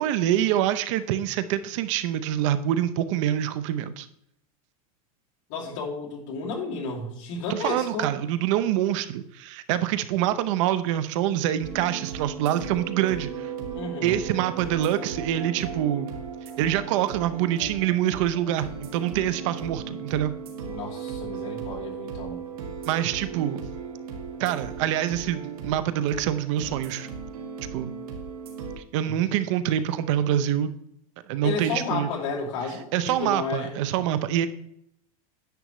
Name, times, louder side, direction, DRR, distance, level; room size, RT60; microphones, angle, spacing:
voice 1, 0.0-4.1 7.5-13.5 14.0-16.1 16.6-20.3 22.9-23.7 24.4-27.1 27.7-27.9 28.8-30.7 31.3-32.1 32.9-34.5, right 11 dB, 60° right, 13 dB, 0.7 m, -25 dB
voice 2, 5.5-8.1 13.7-14.2 20.6-22.4 29.1-29.2 31.4-33.8, left 4 dB, 50° left, -2 dB, 2.6 m, -32 dB
sound 1, 11.6-28.8, right 6 dB, 85° right, 1.9 m, -37 dB
10.5 x 7.2 x 3.1 m, 0.74 s
supercardioid pair, 145°, 18 cm